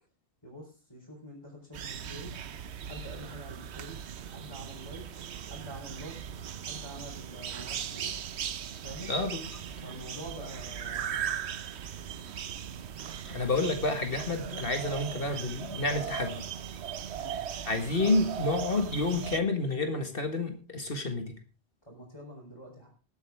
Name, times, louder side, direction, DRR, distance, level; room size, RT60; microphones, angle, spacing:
voice 1, 0.4-2.3 2.8-4.0 4.3-5.1 5.5-6.2 6.6-8.1 8.7-9.2 9.8-11.5 17.2-17.4 21.9-22.9, equal, 25° left, -6 dB, 4.1 m, -46 dB
sound 1, 1.7-19.4, right 8 dB, 80° right, 1.0 m, -38 dB
voice 2, 9.1-9.5 13.3-16.5 17.7-21.3, left 2 dB, 55° left, 5 dB, 2.0 m, -29 dB
20.5 x 7.9 x 3.5 m, 0.33 s
omnidirectional pair, 1.1 m